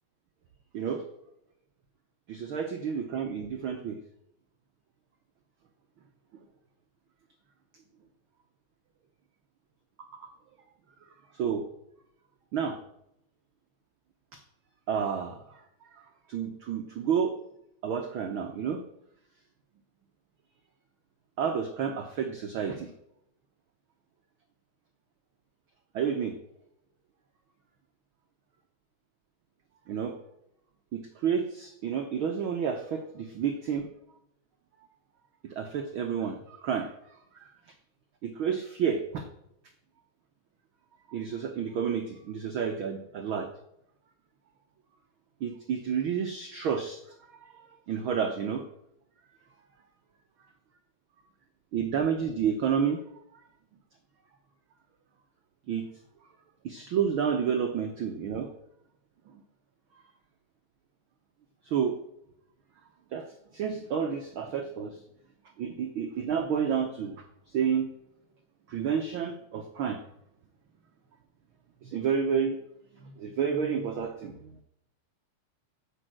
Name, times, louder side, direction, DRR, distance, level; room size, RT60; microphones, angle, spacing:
voice 1, 2.3-4.0 10.1-10.3 11.3-11.7 12.5-12.8 14.3-14.4 14.9-17.3 17.8-18.8 21.4-22.9 25.9-26.4 29.9-30.2 30.9-33.9 35.4-36.9 37.3-37.5 38.2-39.3 41.1-43.5 45.4-47.0 47.4-47.5 47.9-48.7 51.7-53.0 55.7-55.9 56.6-58.5 61.6-62.0 63.1-63.2 63.5-65.0 65.6-67.2 67.5-67.9 68.7-70.0 71.8-72.6 73.0-74.5, right 7 dB, 85° right, 5 dB, 1.1 m, -30 dB
10.0 x 7.7 x 7.6 m, 0.79 s
omnidirectional pair, 3.5 m